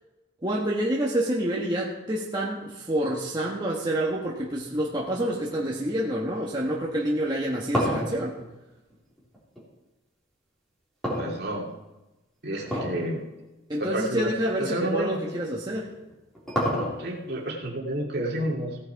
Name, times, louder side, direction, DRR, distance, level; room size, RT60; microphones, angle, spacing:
voice 1, 0.4-8.4 12.7-12.8 13.7-15.9, right 1 dB, 20° right, -4 dB, 1.3 m, -28 dB
sound 1, 7.2-9.7 11.0-11.9 12.6-13.1 13.4-13.5 14.3-14.4 15.8-17.3, equal, ahead, 3.6 m, -28 dB
voice 2, 11.2-11.7 12.4-13.2 13.8-14.3 14.6-15.2 17.0-18.8, right 1 dB, 50° right, -2 dB, 2.6 m, -30 dB
16.5 x 9.3 x 4.7 m, 1.0 s
head